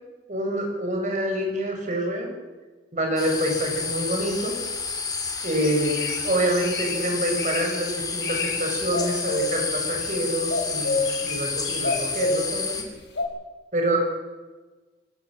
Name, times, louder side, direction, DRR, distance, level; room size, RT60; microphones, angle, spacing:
voice 1, 0.3-2.3 2.9-4.6 5.4-6.0 6.2-12.8 13.7-14.0, right 1 dB, 45° right, 2 dB, 5.8 m, -26 dB
sound 1, 3.2-12.8, left 5 dB, 20° left, 3.0 m, -30 dB
sound 2, 3.7-5.0 5.4-7.0 7.4-7.7 8.1-8.6 8.8-10.1 10.5-12.6 13.2-13.3, left 3 dB, 80° left, 5.0 m, -29 dB
26.5 x 13.5 x 7.5 m, 1.2 s
head